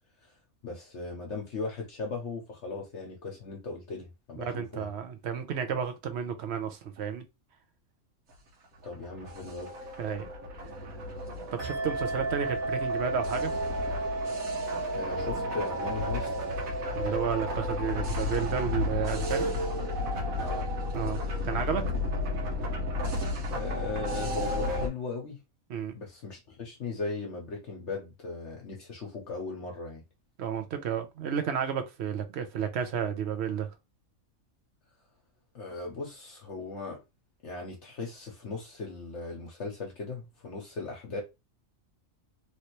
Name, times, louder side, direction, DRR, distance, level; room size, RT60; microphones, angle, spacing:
voice 1, 0.6-4.9 8.8-9.7 14.9-16.3 20.4-20.7 23.5-25.4 25.9-30.0 35.5-37.0 37.4-41.2, left 3 dB, 60° left, 1.0 m, -38 dB
voice 2, 4.4-7.2 10.0-10.3 11.6-13.5 16.9-19.5 20.9-21.9 25.7-25.9 30.4-33.7, right 7 dB, 60° right, 0.8 m, -32 dB
sound 1, 8.8-24.9, left 1 dB, 80° right, 1.4 m, -33 dB
sound 2, 11.6-19.7, right 2 dB, 40° right, 1.4 m, -35 dB
3.1 x 2.6 x 3.0 m
omnidirectional pair, 1.4 m